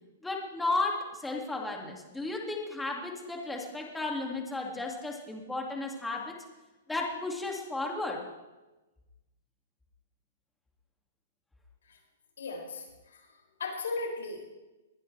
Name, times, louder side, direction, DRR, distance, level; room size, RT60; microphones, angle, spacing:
voice 1, 0.2-6.4 6.9-8.3, left 2 dB, 5° left, -1 dB, 2.2 m, -34 dB
voice 2, 12.4-14.4, left 3 dB, 85° left, 0 dB, 6.1 m, -37 dB
21.0 x 19.5 x 3.3 m, 1.1 s
hypercardioid pair, 150°, 0 cm